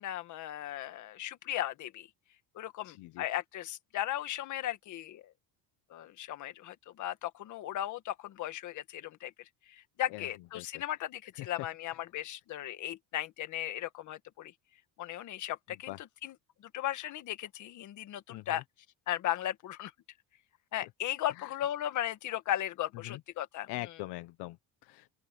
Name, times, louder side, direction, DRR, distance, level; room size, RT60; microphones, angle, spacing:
voice 1, 0.0-2.1 2.5-5.2 5.9-9.3 9.7-14.5 15.0-15.9 16.2-16.3 16.7-18.6 19.1-19.9 20.7-23.7, left 12 dB, 45° left, 1.6 m, -36 dB
voice 2, 2.8-3.2 10.1-10.3 10.5-10.8 11.3-11.7 15.9-16.0 18.3-18.6 20.8-20.9 21.4-21.5 23.0-23.2 23.7-25.2, left 19 dB, 70° left, 1.1 m, -43 dB
open air
cardioid pair, 175°, 41 cm